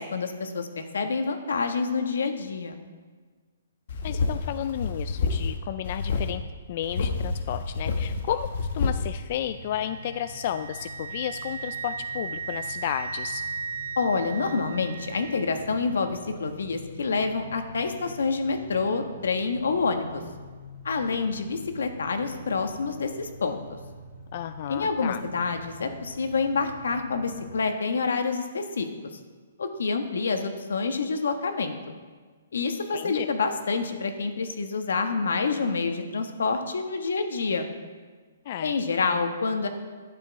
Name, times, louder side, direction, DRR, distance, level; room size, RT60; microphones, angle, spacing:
voice 1, 0.0-2.8 14.0-20.2 20.8-23.6 24.7-28.9 29.6-31.7 32.5-37.7 38.6-39.7, left 4 dB, 80° left, 6 dB, 1.4 m, -27 dB
sound 1, 3.9-5.6 5.8-6.3 6.8-9.1, left 4 dB, 55° left, 1.2 m, -28 dB
voice 2, 4.0-6.4 6.7-13.4 24.3-25.2 32.9-33.3 38.5-38.7, left 10 dB, 35° left, 11 dB, 0.3 m, -32 dB
sound 2, 9.1-27.5, left 1 dB, 10° left, 2.2 m, -45 dB
Wind instrument woodwind instrument, 9.7-15.7, right 6 dB, 65° right, 0.5 m, -37 dB
11.5 x 9.3 x 4.7 m, 1.5 s
hypercardioid pair, 170°, 0 cm